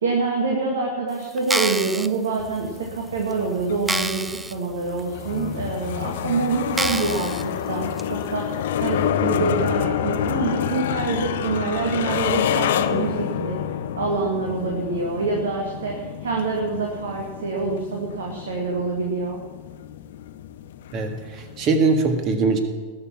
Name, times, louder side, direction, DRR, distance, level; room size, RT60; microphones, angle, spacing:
voice 1, 0.0-13.6 13.9-19.4, right 4 dB, 65° right, 1 dB, 1.9 m, -26 dB
sound 1, 1.4-2.1 2.8-2.9 3.3-3.4 3.9-4.5 5.0-5.1 5.8-5.9 6.7-7.4 8.0-8.1, right 2 dB, 5° right, 0.4 m, -27 dB
sound 2, 2.4-21.7, left 10 dB, 55° left, 0.7 m, -28 dB
voice 2, 20.9-22.6, right 4 dB, 35° right, 6 dB, 1.9 m, -21 dB
20.0 x 6.7 x 6.0 m, 1.5 s
figure-of-eight pair, 90°, 0 cm